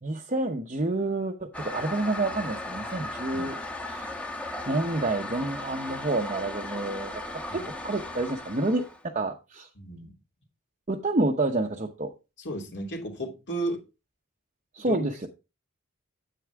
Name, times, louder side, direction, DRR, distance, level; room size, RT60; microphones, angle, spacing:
voice 1, 0.0-3.6 3.9-4.1 4.7-7.2 7.5-9.7 10.9-12.1 14.7-15.3, right 2 dB, 35° right, 0.8 m, -29 dB
Toilet flush, 1.5-9.0, left 2 dB, 5° left, 1.1 m, -37 dB
voice 2, 9.8-10.1 12.4-13.8 14.8-15.1, right 1 dB, 55° left, 2.9 m, -33 dB
9.5 x 8.5 x 3.5 m
head